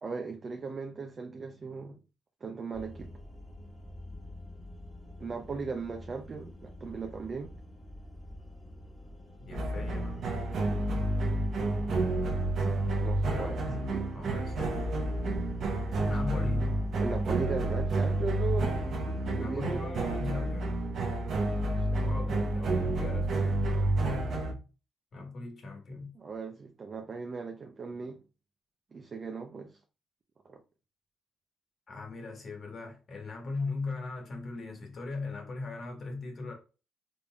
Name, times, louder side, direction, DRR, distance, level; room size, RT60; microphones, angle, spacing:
voice 1, 0.0-2.0 2.4-3.1 5.2-7.5 12.9-14.0 17.0-18.7 19.4-19.9 21.7-22.2 26.1-28.2 28.9-29.8 30.4-30.6, right 4 dB, 40° right, 0.5 m, -38 dB
sound 1, 2.7-20.4, left 1 dB, 10° left, 1.5 m, -48 dB
voice 2, 9.5-10.2 13.3-13.9 14.1-15.0 16.1-16.8 19.1-20.8 22.0-24.3 25.1-26.1 31.9-36.5, left 3 dB, 50° left, 1.3 m, -39 dB
sound 2, 9.5-24.5, right 2 dB, 65° right, 0.8 m, -30 dB
3.7 x 3.6 x 2.3 m
cardioid pair, 90°, 0 cm